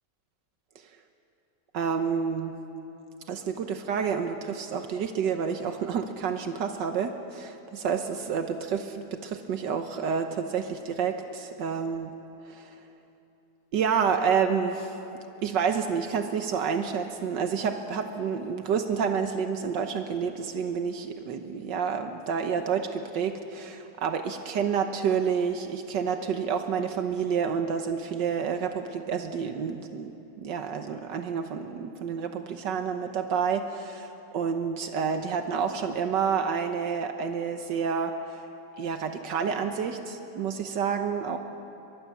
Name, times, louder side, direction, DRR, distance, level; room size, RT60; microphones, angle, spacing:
voice 1, 1.7-2.6 3.3-12.1 12.5-12.8 13.7-15.0 15.4-38.4 38.8-41.4, right 6 dB, 80° right, 6 dB, 1.7 m, -29 dB
23.5 x 22.5 x 7.3 m, 2.8 s
omnidirectional pair, 1.9 m